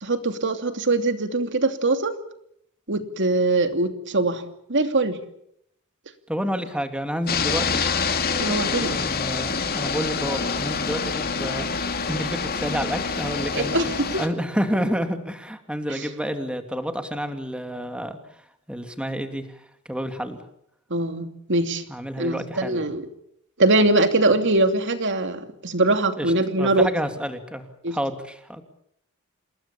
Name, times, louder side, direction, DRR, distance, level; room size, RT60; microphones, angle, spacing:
voice 1, 0.0-2.1 2.9-5.2 8.4-9.0 13.5-14.2 15.9-16.1 20.9-21.8 22.2-23.1 23.6-26.9 27.8-28.0, right 2 dB, 55° right, 8 dB, 2.7 m, -22 dB
voice 2, 6.3-7.8 8.7-11.7 12.1-18.2 18.7-20.4 21.9-22.8 26.2-28.6, equal, 5° right, 7 dB, 2.6 m, -29 dB
sound 1, 7.3-14.3, left 5 dB, 45° left, 2.7 m, -26 dB
28.0 x 20.5 x 7.3 m, 0.73 s
head